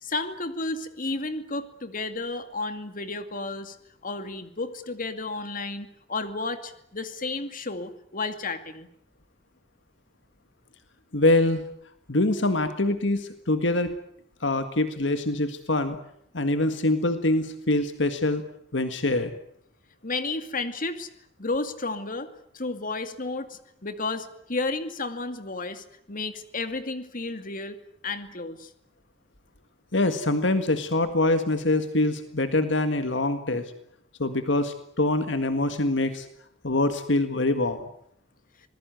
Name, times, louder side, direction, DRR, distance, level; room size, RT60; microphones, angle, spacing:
voice 1, 0.0-3.8 4.0-8.9 20.0-21.1 21.4-27.8 28.0-28.7, left 3 dB, 45° left, 9 dB, 2.4 m, -32 dB
voice 2, 11.1-11.6 12.1-13.9 14.4-16.0 16.3-18.4 18.7-19.3 29.9-33.7 34.2-36.3 36.6-37.9, left 2 dB, 70° left, 9 dB, 1.8 m, -24 dB
26.5 x 20.5 x 9.3 m, 0.72 s
head